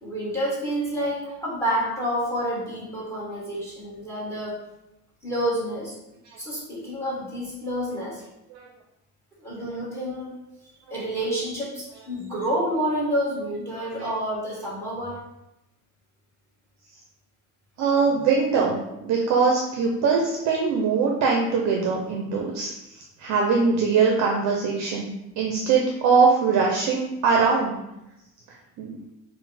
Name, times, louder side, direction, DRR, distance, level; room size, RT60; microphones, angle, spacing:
voice 1, 0.0-4.6 5.2-5.9 6.4-8.2 9.4-10.3 10.9-15.2, equal, 5° left, -6 dB, 1.2 m, -28 dB
voice 2, 13.8-14.1 17.8-27.7 28.5-29.0, right 5 dB, 50° right, -1 dB, 0.5 m, -22 dB
3.8 x 2.1 x 4.1 m, 0.91 s
cardioid pair, 170°, 37 cm